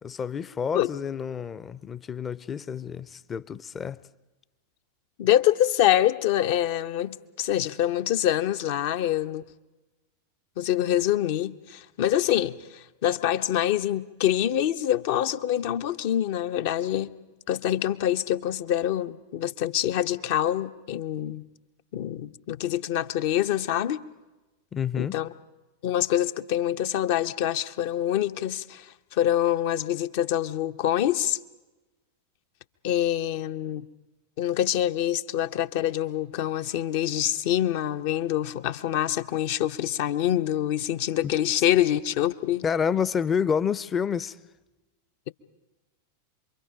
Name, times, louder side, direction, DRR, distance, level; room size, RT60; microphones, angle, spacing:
voice 1, 0.0-4.0 24.7-25.2 41.2-41.3 42.6-44.4, left 7 dB, 20° left, 0.6 m, -29 dB
voice 2, 5.2-9.4 10.6-17.1 17.5-21.4 21.9-24.0 25.0-25.3 25.8-31.4 32.8-33.9 34.4-42.6, left 12 dB, 50° left, 0.8 m, -25 dB
27.5 x 23.0 x 5.1 m
figure-of-eight pair, 90°, 0 cm